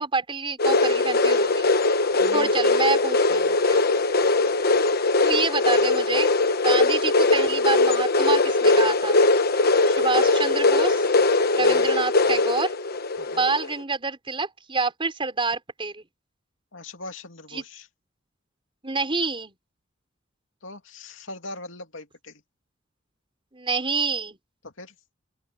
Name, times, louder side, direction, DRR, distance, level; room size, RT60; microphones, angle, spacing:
voice 1, 0.0-1.7 2.3-3.8 5.2-6.3 6.6-9.2 9.9-11.0 11.6-12.7 13.3-16.0 17.5-17.6 18.8-19.5 23.5-24.4, right 4 dB, 25° right, 4.4 m, -27 dB
sound 1, 0.6-13.7, left 3 dB, 50° left, 1.1 m, -20 dB
voice 2, 2.2-2.5 3.3-3.6 11.6-11.9 13.2-13.5 16.7-17.9 20.6-22.4 24.6-24.9, left 2 dB, 85° left, 2.7 m, -41 dB
open air
head